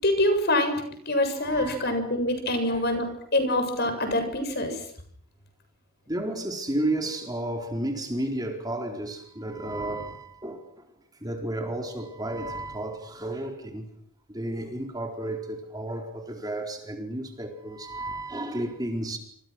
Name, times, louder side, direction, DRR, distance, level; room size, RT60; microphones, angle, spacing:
voice 1, 0.0-4.8, left 1 dB, 50° left, 7.4 m, -25 dB
voice 2, 1.4-2.0 2.6-2.9 6.1-10.6 11.2-13.9 14.3-19.2, right 1 dB, 20° right, 4.3 m, -32 dB
30.0 x 28.0 x 6.3 m
head